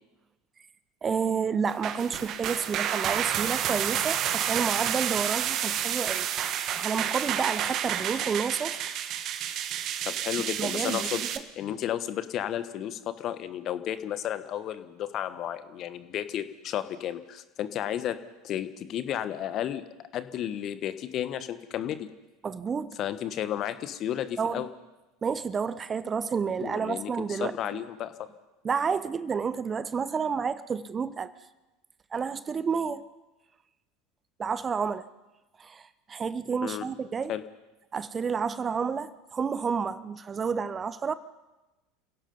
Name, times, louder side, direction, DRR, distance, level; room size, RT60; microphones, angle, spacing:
voice 1, 1.0-6.3 6.7-8.8 10.6-11.3 22.4-23.0 24.4-24.7 25.2-27.6 28.6-31.3 32.1-33.0 34.4-35.1 35.6-37.3 37.9-41.1, right 6 dB, 25° right, 16 dB, 0.8 m, -30 dB
sound 1, 1.7-11.4, right 10 dB, 45° right, 1.3 m, -30 dB
voice 2, 10.0-11.2 11.6-18.2 18.4-19.8 20.1-22.1 23.0-24.7 26.6-28.1 36.6-36.8 37.3-37.4, left 11 dB, 45° left, 13 dB, 1.2 m, -32 dB
29.0 x 16.5 x 5.5 m, 1.1 s
figure-of-eight pair, 75°, 0 cm